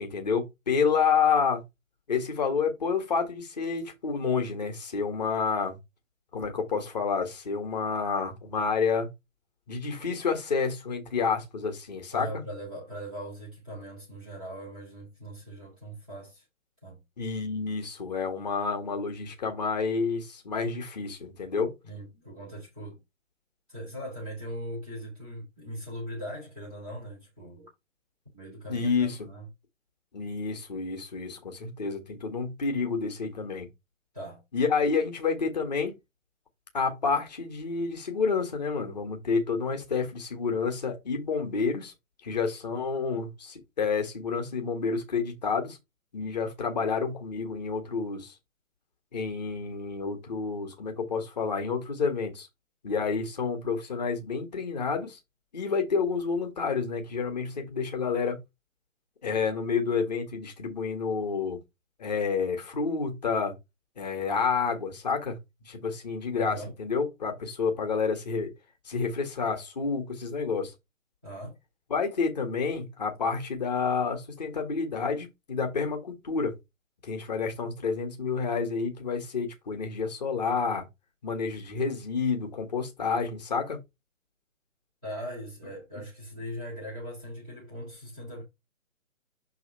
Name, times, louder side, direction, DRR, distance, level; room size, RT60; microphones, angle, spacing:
voice 1, 0.0-1.6 2.1-5.8 6.3-9.1 9.7-12.3 17.2-21.7 28.7-29.3 30.1-33.7 34.5-36.0 36.7-41.9 42.2-45.8 46.1-48.3 49.1-52.5 52.8-55.2 55.5-58.4 59.2-61.6 62.0-63.5 64.0-65.4 65.7-68.5 68.9-70.7 71.9-76.5 77.0-80.8 81.2-83.8, left 5 dB, 30° left, 1.6 m, -29 dB
voice 2, 12.1-16.4 16.8-17.0 21.8-23.0 23.7-27.7 28.3-29.5 34.1-34.4 66.3-66.7 71.2-71.6 85.0-88.4, equal, 5° left, 0.6 m, -40 dB
6.3 x 3.5 x 4.5 m
figure-of-eight pair, 145°, 39 cm